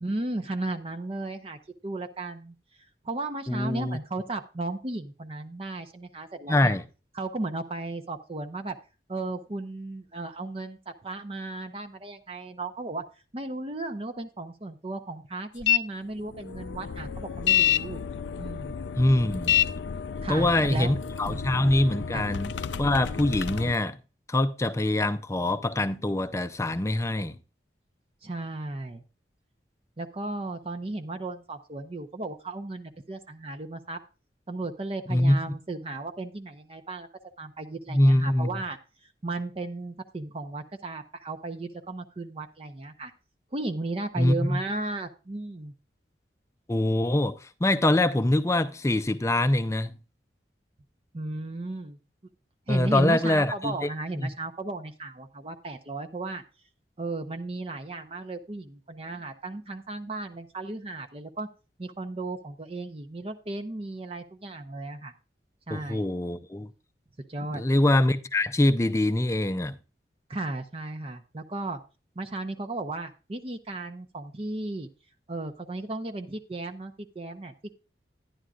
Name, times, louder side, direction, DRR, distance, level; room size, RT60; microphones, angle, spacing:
voice 1, 0.0-2.5 3.0-6.8 7.2-8.8 9.1-13.0 13.3-18.0 18.4-18.8 20.2-20.9 21.3-21.4 22.1-22.2 28.2-29.0 30.0-34.0 34.5-37.1 37.4-38.8 39.2-43.1 43.5-45.7 51.1-52.0 52.7-56.4 57.0-61.5 61.8-65.1 65.7-66.0 67.3-67.6 70.3-71.8 72.2-74.9 75.3-77.7, right 2 dB, 35° right, 0.6 m, -35 dB
voice 2, 3.5-4.0 6.5-6.8 19.0-19.5 20.3-22.5 22.8-24.0 24.3-27.4 35.1-35.4 37.9-38.5 44.2-44.6 46.7-49.9 52.7-53.8 54.2-54.3 65.7-66.7 67.5-69.7, left 1 dB, 15° left, 0.5 m, -24 dB
sound 1, 15.6-15.8 16.2-23.7, left 10 dB, 90° left, 0.4 m, -29 dB
11.0 x 10.5 x 2.4 m
head